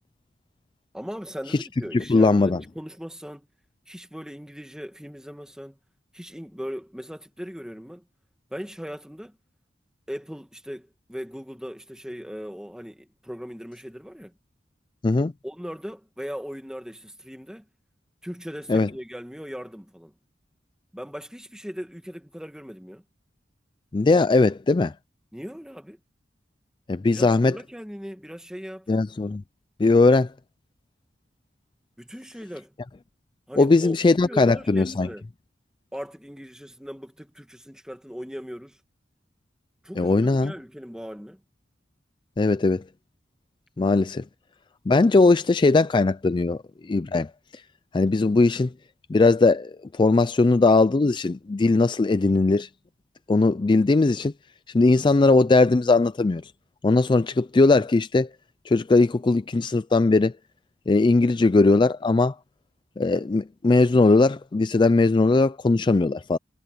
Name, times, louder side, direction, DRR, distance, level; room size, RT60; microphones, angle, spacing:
voice 1, 0.9-3.5 3.9-5.8 6.1-8.0 8.5-9.4 10.1-14.3 15.4-17.7 18.2-20.1 20.9-23.0 25.3-26.0 27.1-28.9 32.0-32.7 33.5-35.2 35.9-38.8 39.8-41.4, equal, 5° right, 2.1 m, -38 dB
voice 2, 1.9-2.6 15.0-15.3 18.7-18.9 23.9-24.9 26.9-27.6 28.9-29.4 29.8-30.3 33.6-35.1 40.0-40.5 42.4-42.8 43.8-44.2 44.9-47.3 47.5-47.6 47.9-48.7 49.1-52.7 53.3-54.3 54.7-56.5 56.8-58.3 58.7-60.3 60.9-62.3 63.0-66.4, left 3 dB, 25° left, 0.4 m, -19 dB
head